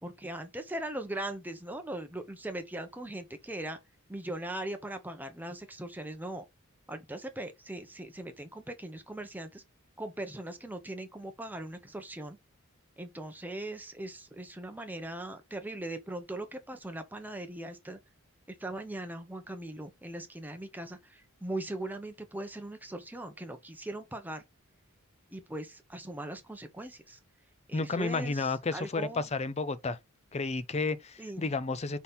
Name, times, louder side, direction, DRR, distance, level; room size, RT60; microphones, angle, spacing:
voice 1, 0.0-3.8 4.1-6.4 6.9-9.6 10.0-12.4 13.0-18.0 18.6-24.4 25.3-27.2 27.7-29.3 31.2-31.5, right 1 dB, 10° right, 1.0 m, -40 dB
voice 2, 27.7-30.0 30.3-32.0, left 3 dB, 30° left, 0.5 m, -32 dB
4.2 x 4.1 x 5.5 m
head